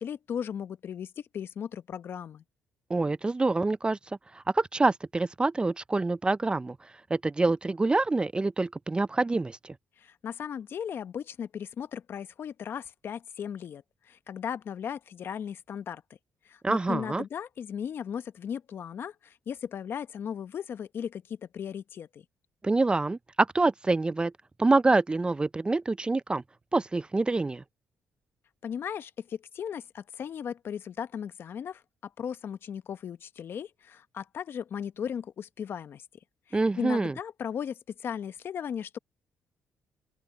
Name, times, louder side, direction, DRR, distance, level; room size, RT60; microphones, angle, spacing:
voice 1, 0.0-2.4 10.0-16.0 16.4-22.2 28.6-36.0 36.5-39.0, left 8 dB, 60° left, 1.1 m, -37 dB
voice 2, 2.9-4.0 4.3-6.8 7.1-9.7 16.6-17.2 22.6-24.3 24.6-26.4 26.7-27.6 36.5-37.1, right 3 dB, 20° right, 0.5 m, -26 dB
open air
supercardioid pair, 65°, 4 cm